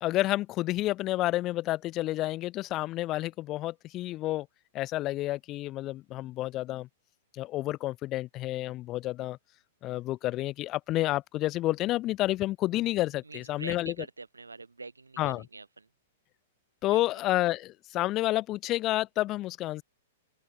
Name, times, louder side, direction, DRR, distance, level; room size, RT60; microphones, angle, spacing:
voice 1, 0.0-4.5 4.7-6.9 7.3-9.4 9.8-13.9 15.2-15.4 16.8-19.8, left 16 dB, 35° left, 0.4 m, -30 dB
voice 2, 13.2-15.9 16.9-17.0, right 3 dB, 85° right, 3.4 m, -44 dB
open air
figure-of-eight pair, 105°, 0 cm